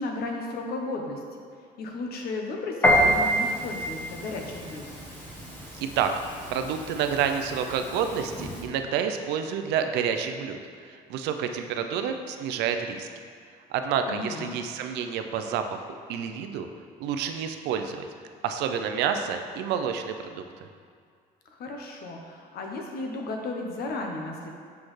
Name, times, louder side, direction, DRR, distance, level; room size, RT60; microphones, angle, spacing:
voice 1, 0.0-1.4 1.8-4.8 14.1-14.5 21.5-24.5, left 2 dB, 65° left, 1 dB, 0.9 m, -34 dB
Piano, 2.8-8.7, equal, 10° left, 1.1 m, -28 dB
voice 2, 5.8-6.1 6.5-13.1 13.7-16.7 17.0-18.1 18.4-20.4, right 7 dB, 85° right, 7 dB, 0.5 m, -29 dB
6.3 x 5.8 x 3.2 m, 2.1 s
cardioid pair, 110°, 17 cm